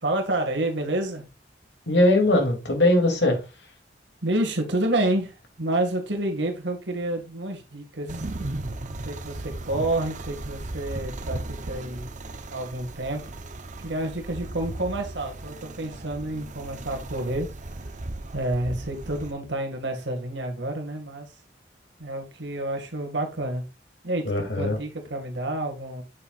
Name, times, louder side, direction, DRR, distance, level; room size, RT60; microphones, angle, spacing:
voice 1, 0.0-1.3 4.2-8.2 9.0-12.1 12.5-13.2 13.8-17.5 18.3-21.3 22.0-23.6 24.0-26.0, right 1 dB, 80° right, 2.0 m, -29 dB
voice 2, 1.9-3.4 24.2-24.8, left 1 dB, 70° left, 2.7 m, -20 dB
sound 1, 8.1-19.3, right 2 dB, 45° right, 0.8 m, -36 dB
8.5 x 7.4 x 2.4 m
head